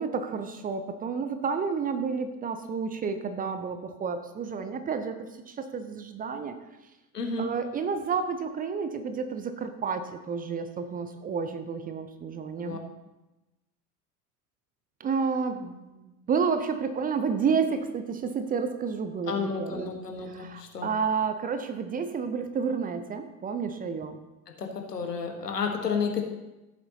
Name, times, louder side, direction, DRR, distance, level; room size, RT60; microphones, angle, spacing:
voice 1, 0.0-6.6 7.4-12.8 15.0-19.9 20.2-24.2, right 5 dB, 20° right, 9 dB, 0.6 m, -30 dB
voice 2, 7.1-7.5 12.6-12.8 19.3-20.9 24.6-26.3, left 5 dB, 80° left, 4 dB, 1.4 m, -31 dB
14.5 x 7.8 x 2.8 m, 1.0 s
figure-of-eight pair, 80°, 47 cm